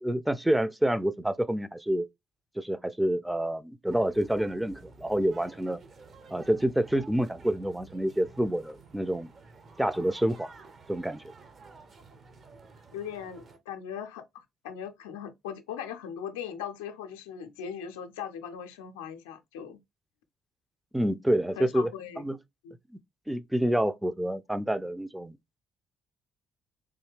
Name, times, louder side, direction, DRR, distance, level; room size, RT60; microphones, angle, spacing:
voice 1, 0.0-2.1 2.6-5.8 6.3-9.3 9.8-10.5 10.9-11.2 20.9-21.9 22.2-22.4 23.3-25.4, right 1 dB, 5° right, 0.4 m, -28 dB
sound 1, 3.9-13.6, right 4 dB, 40° right, 0.7 m, -52 dB
voice 2, 12.9-19.8 21.6-22.3 22.6-22.7, left 8 dB, 75° left, 0.4 m, -39 dB
3.6 x 2.7 x 3.2 m
figure-of-eight pair, 45°, 0 cm